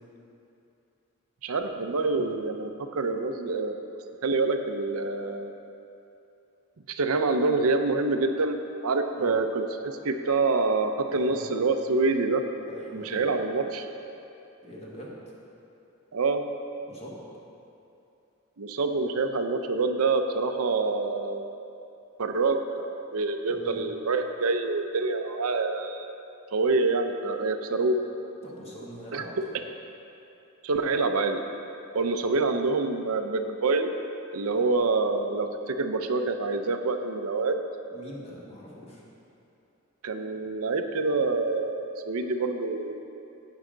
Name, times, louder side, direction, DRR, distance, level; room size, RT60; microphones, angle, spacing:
voice 1, 1.4-3.8 4.2-5.5 6.9-8.6 8.8-12.4 12.9-13.9 16.1-16.4 18.6-21.5 22.2-22.9 23.1-26.1 26.5-28.0 29.1-29.2 30.6-31.4 31.9-33.9 34.3-37.6 40.0-43.0, right 3 dB, 85° right, 6 dB, 0.6 m, -26 dB
voice 2, 11.1-11.4 12.6-13.2 14.6-15.1 16.9-17.2 23.5-23.8 28.4-29.3 32.2-32.3 37.9-39.0, equal, 30° left, -5 dB, 1.7 m, -43 dB
15.5 x 5.6 x 3.9 m, 2.8 s
head